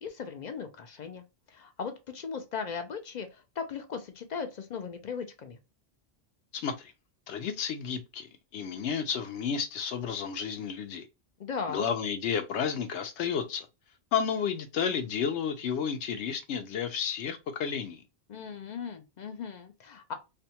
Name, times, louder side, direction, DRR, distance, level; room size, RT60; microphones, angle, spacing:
voice 1, 0.0-5.6 11.4-11.9 18.3-20.1, left 6 dB, 55° left, 0.5 m, -38 dB
voice 2, 6.5-6.9 7.3-11.1 11.7-13.7 14.1-18.0, left 7 dB, 80° left, 0.9 m, -32 dB
2.5 x 2.2 x 2.7 m
omnidirectional pair, 1.1 m